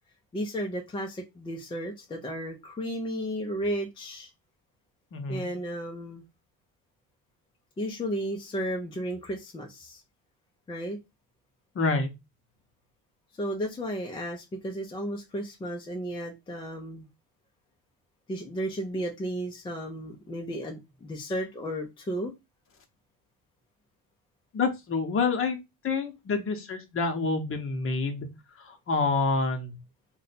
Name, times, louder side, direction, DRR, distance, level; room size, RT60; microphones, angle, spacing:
voice 1, 0.3-4.3 5.3-6.3 7.8-10.0 10.7-11.0 13.4-17.1 18.3-22.3, equal, 15° left, 0.3 m, -33 dB
voice 2, 5.1-5.5 11.8-12.1 24.5-25.6 25.8-28.3 28.6-29.7, left 4 dB, 35° left, 0.7 m, -27 dB
2.6 x 2.2 x 4.0 m
cardioid pair, 140°, 41 cm